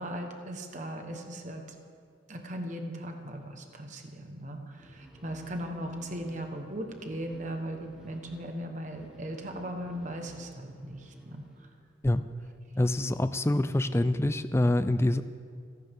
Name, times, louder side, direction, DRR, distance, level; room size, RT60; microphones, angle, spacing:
voice 1, 0.0-1.6 2.3-11.7, right 1 dB, 40° right, 3 dB, 1.3 m, -38 dB
sound 1, 4.7-12.2, equal, 5° right, 1.7 m, -54 dB
voice 2, 12.8-15.2, left 1 dB, 15° left, 12 dB, 0.4 m, -25 dB
28.0 x 11.0 x 3.7 m, 2.2 s
head